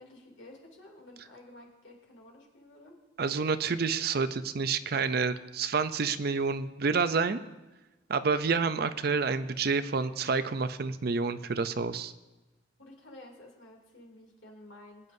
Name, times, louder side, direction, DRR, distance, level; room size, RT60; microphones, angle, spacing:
voice 1, 0.0-2.9 12.8-15.1, left 1 dB, 85° left, 0 dB, 2.8 m, -52 dB
voice 2, 3.2-7.4 8.1-12.1, right 4 dB, 55° right, 12 dB, 0.5 m, -29 dB
22.0 x 9.4 x 2.7 m, 1.1 s
head